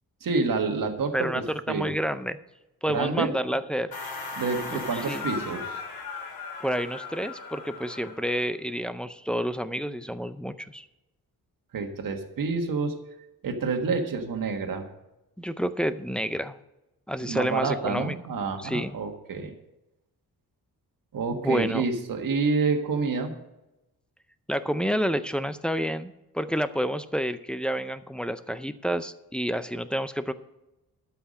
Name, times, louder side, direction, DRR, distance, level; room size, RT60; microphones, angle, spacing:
voice 1, 0.2-1.9 2.9-3.3 4.4-5.8 11.7-13.0 13.4-14.8 17.2-19.5 21.1-23.3, right 4 dB, 65° right, 4 dB, 1.6 m, -28 dB
voice 2, 1.1-2.4 2.8-3.9 4.7-4.8 5.1-5.2 6.6-10.9 15.4-16.6 17.1-18.2 18.6-18.9 21.3-21.8 24.5-30.3, equal, 5° left, 10 dB, 0.4 m, -29 dB
sound 1, 3.9-8.4, left 4 dB, 75° left, 2.7 m, -37 dB
12.5 x 5.9 x 6.4 m, 0.94 s
wide cardioid pair, 155°, 36 cm